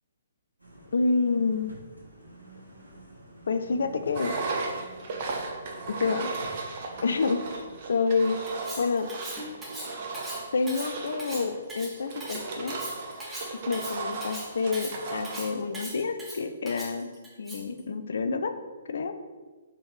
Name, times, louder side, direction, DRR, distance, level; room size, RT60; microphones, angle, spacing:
sound 1, 0.6-10.4 10.8-10.9, right 2 dB, 85° right, 1.2 m, -50 dB
voice 1, 0.9-1.7 3.5-4.4 6.0-6.3 7.0-7.4 7.9-8.4 8.8-9.1 10.5-12.8 13.7-17.1 17.4-18.6 18.9-19.2, left 4 dB, 55° left, 9 dB, 0.4 m, -28 dB
Engine, 4.1-15.5, right 3 dB, 40° right, 0.6 m, -36 dB
Cutlery silverware, 8.5-17.8, right 1 dB, 5° right, 0.8 m, -40 dB
4.2 x 3.7 x 3.1 m, 1.3 s
figure-of-eight pair, 125°, 0 cm